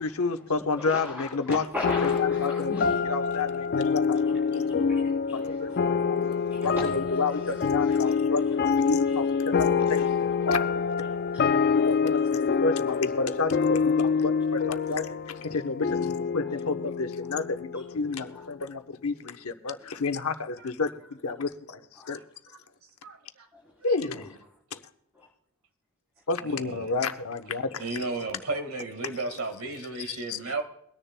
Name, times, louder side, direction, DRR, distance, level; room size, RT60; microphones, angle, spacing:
voice 1, 0.0-1.7 2.0-4.2 4.5-4.6 5.3-6.2 6.6-10.0 10.5-10.6 11.8-21.8 22.1-22.2 23.8-24.4 24.7-24.8 26.3-28.1 30.0-30.4, left 4 dB, 80° left, 0.9 m, -30 dB
voice 2, 0.8-3.0 4.3-4.4 4.7-6.9 7.4-7.5 7.9-8.4 11.3-11.6 25.2-25.3, left 2 dB, 10° right, 3.8 m, -38 dB
sound 1, 1.8-18.6, left 5 dB, 45° left, 0.4 m, -26 dB
voice 3, 23.0-23.5 26.5-26.9 27.8-30.6, right 3 dB, 70° right, 1.7 m, -34 dB
23.0 x 10.0 x 2.2 m
head